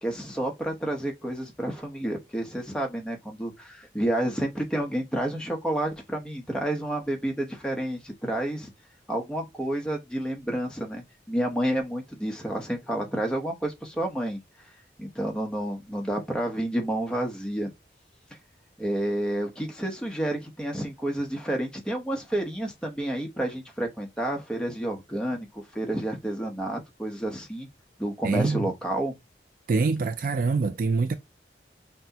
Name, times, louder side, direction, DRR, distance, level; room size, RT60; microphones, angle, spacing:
voice 1, 0.0-8.7 9.1-14.4 15.0-17.7 18.8-27.7 28.0-29.1, right 1 dB, 5° left, 0.8 m, -30 dB
voice 2, 28.2-28.7 29.7-31.2, right 4 dB, 50° right, 0.3 m, -25 dB
5.9 x 2.1 x 2.7 m
head